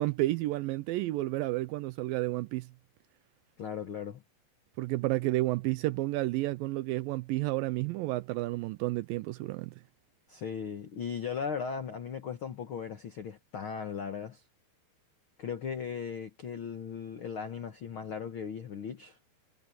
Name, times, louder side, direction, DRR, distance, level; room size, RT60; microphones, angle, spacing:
voice 1, 0.0-2.7 4.8-9.8, right 18 dB, 80° right, 2.1 m, -31 dB
voice 2, 3.6-4.2 10.3-14.4 15.4-19.2, left 6 dB, 85° left, 1.1 m, -37 dB
omnidirectional pair, 4.5 m